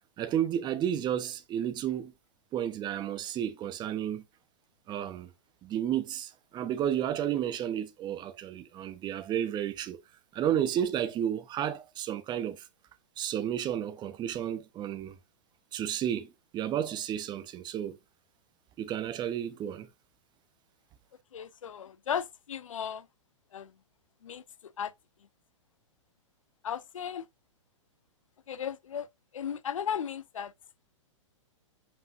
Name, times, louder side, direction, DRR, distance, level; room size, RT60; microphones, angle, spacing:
voice 1, 0.2-2.1 2.5-4.2 4.9-5.3 5.6-10.0 10.3-12.7 13.2-15.2 15.7-18.0 18.8-19.9, right 10 dB, 25° right, 1.1 m, -32 dB
voice 2, 21.3-23.1 23.5-23.7 24.2-24.4 24.8-24.9 26.6-27.3 28.5-29.1 29.3-30.5, left 8 dB, 80° left, 0.6 m, -35 dB
7.9 x 5.5 x 2.6 m
hypercardioid pair, 115°, 17 cm